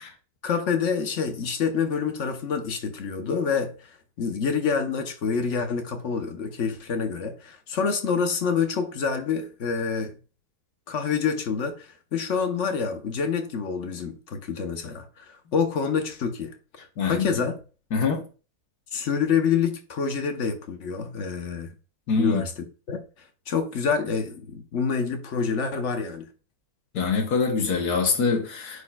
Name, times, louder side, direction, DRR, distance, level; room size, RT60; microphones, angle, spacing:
voice 1, 0.4-10.1 10.9-17.6 18.9-21.7 22.2-22.5 22.9-23.0 23.5-26.3, left 6 dB, 55° left, 1.0 m, -27 dB
voice 2, 17.0-17.3 17.9-18.2 22.1-22.4 26.9-28.8, left 4 dB, 70° left, 1.5 m, -24 dB
9.6 x 4.3 x 2.3 m
omnidirectional pair, 1.7 m